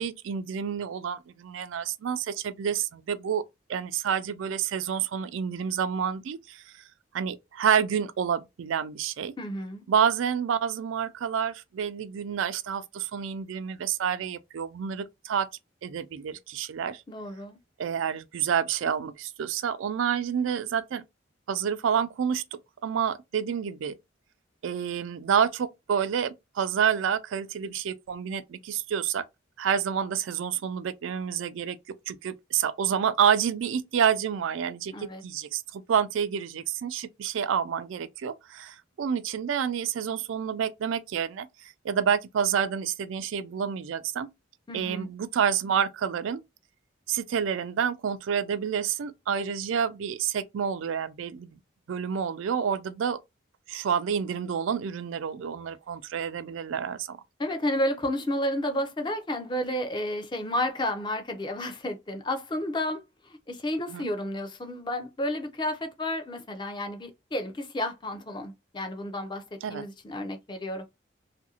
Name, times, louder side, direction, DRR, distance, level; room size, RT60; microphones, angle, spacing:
voice 1, 0.0-3.4 3.7-6.6 7.1-9.3 9.9-15.5 15.8-17.0 17.8-21.0 21.5-22.4 22.8-23.9 24.6-29.2 29.6-31.8 32.1-34.9 35.2-44.3 44.7-46.4 47.1-51.6 51.9-53.2 53.7-57.2 63.9-64.1 69.6-69.8, right 7 dB, 80° right, 0.3 m, -28 dB
voice 2, 9.4-9.8 17.1-17.6 34.9-35.2 44.7-45.1 57.4-70.8, left 1 dB, 25° left, 0.5 m, -31 dB
2.7 x 2.5 x 2.7 m
head